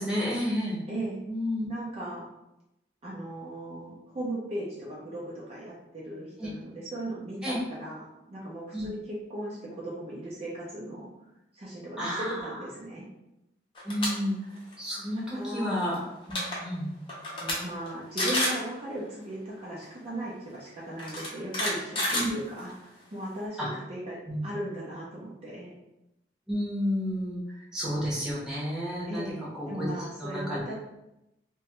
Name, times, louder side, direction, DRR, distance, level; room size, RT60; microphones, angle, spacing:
voice 1, 0.0-0.8 1.3-1.7 6.4-6.5 7.4-7.6 8.7-8.9 12.0-12.4 13.8-14.3 14.8-16.0 16.3-16.9 22.1-22.3 23.6-23.7 24.3-24.4 26.5-29.3 29.6-29.9 30.2-30.6, equal, 5° right, -7 dB, 0.8 m, -31 dB
voice 2, 0.9-1.2 1.7-2.2 3.0-11.1 11.5-13.1 15.2-15.8 17.3-25.7 29.1-30.8, right 1 dB, 35° right, -6 dB, 0.5 m, -37 dB
sound 1, 13.7-14.1 14.5-14.7 15.9-16.0 16.2-16.6 17.1-17.5 17.9-18.0 18.2-18.6 19.8-19.9 21.0-22.8, left 1 dB, 30° left, 0.7 m, -29 dB
2.9 x 2.2 x 3.0 m, 0.90 s
head